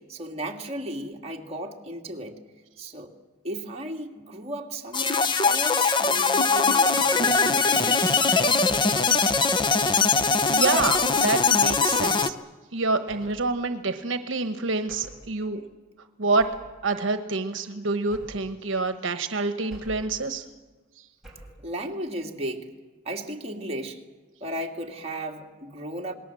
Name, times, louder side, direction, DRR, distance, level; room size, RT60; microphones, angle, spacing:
voice 1, 0.1-2.4 2.8-3.1 3.4-8.5 21.6-22.7 23.0-24.0 24.4-26.1, right 1 dB, 30° right, 1 dB, 2.2 m, -35 dB
sound 1, 4.9-12.3, left 4 dB, 25° left, 0.8 m, -21 dB
voice 2, 10.5-12.4 12.7-15.6 16.2-16.5 16.8-20.4, right 3 dB, 75° right, 9 dB, 1.1 m, -27 dB
sound 2, 10.8-11.2 13.1-13.5 14.9-15.3 16.4-16.8 18.1-18.6 19.7-20.2 21.2-21.7, right 1 dB, ahead, 6.3 m, -46 dB
28.0 x 20.0 x 7.6 m, 1.3 s
head